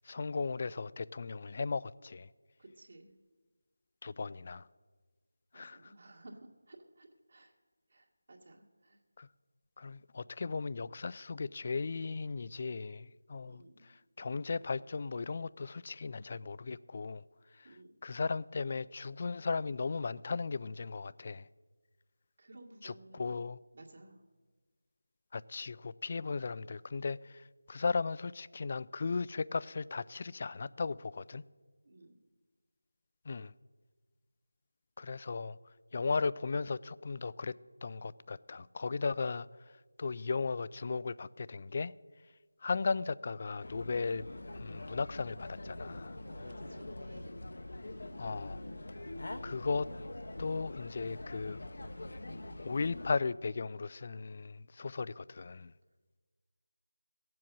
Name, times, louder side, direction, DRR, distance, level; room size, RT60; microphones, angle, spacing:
voice 1, 0.0-2.3 4.0-4.7 5.5-5.9 9.2-9.3 9.8-17.2 17.5-17.8 18.0-21.5 22.8-23.6 25.3-31.4 33.3-33.5 35.0-35.6 35.9-37.6 37.8-39.5 40.0-41.9 42.6-46.2 48.2-48.6 49.4-49.9 50.4-51.6 52.6-55.7, left 4 dB, 35° left, 0.3 m, -36 dB
voice 2, 2.6-3.1 5.5-6.4 6.7-7.5 7.9-9.0 13.5-13.9 17.6-17.9 22.4-23.4 23.7-24.2 31.8-32.1 46.2-47.4, right 2 dB, 50° right, 2.0 m, -56 dB
sound 1, 43.6-53.2, left 1 dB, 60° left, 0.9 m, -44 dB
17.0 x 7.6 x 7.3 m
figure-of-eight pair, 170°, 0 cm